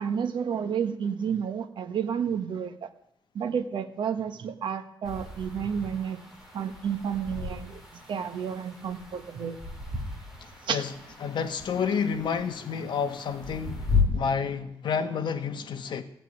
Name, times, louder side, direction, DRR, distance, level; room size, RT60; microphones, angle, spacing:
voice 1, 0.0-2.9 3.3-6.2 6.5-7.8 8.1-9.6 10.6-10.8 14.1-14.2, right 7 dB, 70° right, 1.4 m, -31 dB
sound 1, 5.0-14.0, left 4 dB, 5° right, 3.5 m, -35 dB
voice 2, 11.2-16.0, left 6 dB, 65° left, 1.3 m, -30 dB
15.5 x 8.4 x 9.4 m
wide cardioid pair, 180°, 8 cm